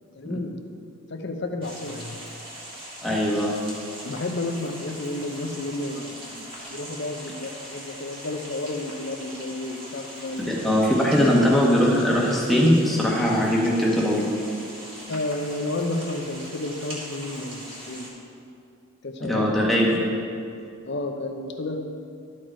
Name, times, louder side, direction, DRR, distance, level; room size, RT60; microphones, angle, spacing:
voice 1, 0.1-0.7 1.1-2.2 4.0-10.7 15.1-18.1 19.0-19.5 20.8-21.8, left 2 dB, 50° left, 4 dB, 0.7 m, -31 dB
sound 1, 1.6-18.1, right 1 dB, 25° right, 1.8 m, -41 dB
voice 2, 3.0-3.5 10.6-14.2 19.2-20.0, equal, ahead, -4 dB, 1.1 m, -20 dB
12.5 x 4.7 x 4.4 m, 2.5 s
head